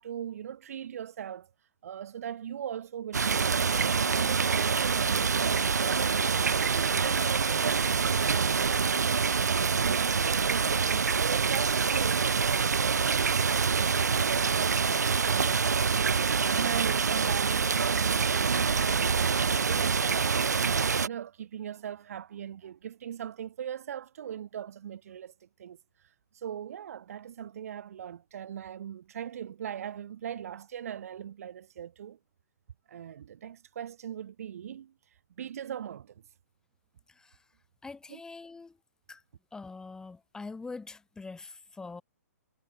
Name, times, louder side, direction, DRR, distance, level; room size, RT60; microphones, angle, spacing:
voice 1, 0.0-1.5 1.8-6.4 6.7-9.4 9.8-13.4 13.7-26.1 26.3-32.2 32.9-34.9 35.4-36.2 38.1-38.2, right 9 dB, 60° right, 6.8 m, -40 dB
sound 1, 3.1-21.1, right 5 dB, 80° right, 1.3 m, -26 dB
voice 2, 37.1-37.4 37.8-38.8 39.1-39.2 39.5-42.0, left 3 dB, 5° left, 3.2 m, -44 dB
hypercardioid pair, 130°, 9 cm